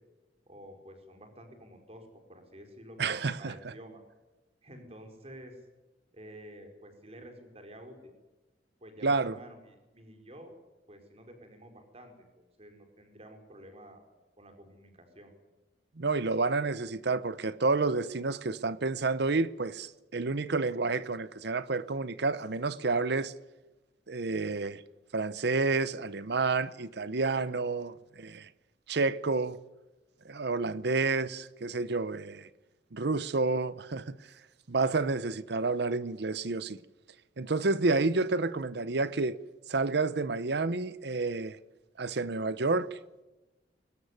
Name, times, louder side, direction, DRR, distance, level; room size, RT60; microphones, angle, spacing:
voice 1, 0.5-4.0 4.6-5.6 6.1-8.1 8.8-10.5 10.9-14.0 14.4-15.3, equal, 35° right, 4.6 m, -50 dB
voice 2, 3.0-3.7 9.0-9.4 16.0-23.3 24.1-24.8 25.1-28.5 28.9-29.6 30.2-32.5 32.9-34.1 34.7-36.8 37.4-39.4 39.7-41.6 42.0-43.0, right 3 dB, 65° right, 0.8 m, -29 dB
21.5 x 18.5 x 9.5 m
head